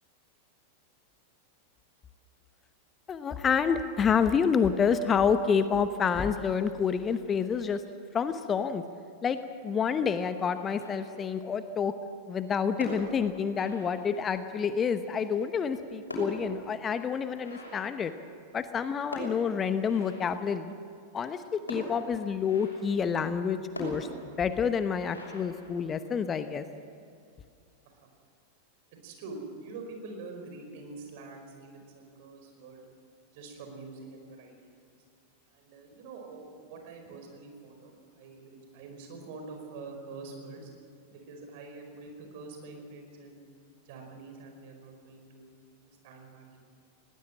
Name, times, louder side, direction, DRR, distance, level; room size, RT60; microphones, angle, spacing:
voice 1, 3.1-7.8 8.1-8.8 9.2-9.4 9.6-11.9 12.3-18.1 18.5-20.7 21.1-24.1 24.4-26.6, left 6 dB, 25° left, 11 dB, 0.9 m, -28 dB
sound 1, 10.8-11.5 12.6-14.5 15.5-18.7 19.1-20.7 21.7-23.1 23.7-26.3, equal, 80° left, 6.4 m, -42 dB
voice 2, 28.9-32.9 33.3-35.0 35.5-40.7 41.1-43.4 43.8-46.7, right 3 dB, 50° right, 3 dB, 4.9 m, -46 dB
20.5 x 18.5 x 7.6 m, 2.4 s
figure-of-eight pair, 90°, 0 cm